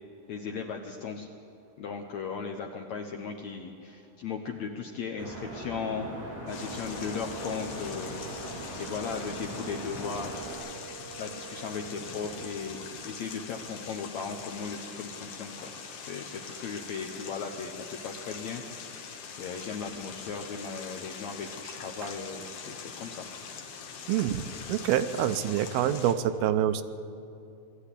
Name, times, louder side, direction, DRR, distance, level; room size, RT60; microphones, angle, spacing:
voice 1, 0.3-1.3 1.8-6.1 6.5-8.2 8.8-10.4 11.2-15.7 16.0-18.8 19.4-23.3, left 5 dB, 85° left, 3 dB, 1.5 m, -37 dB
sound 1, 5.2-10.5, equal, 20° right, 7.8 m, -40 dB
sound 2, 6.5-26.1, left 6 dB, 60° left, 2.6 m, -43 dB
sound 3, 6.5-13.1, right 7 dB, 55° right, 1.9 m, -48 dB
voice 2, 24.1-26.8, right 10 dB, 75° right, 9 dB, 2.5 m, -27 dB
21.0 x 13.5 x 9.9 m, 2.6 s
omnidirectional pair, 4.8 m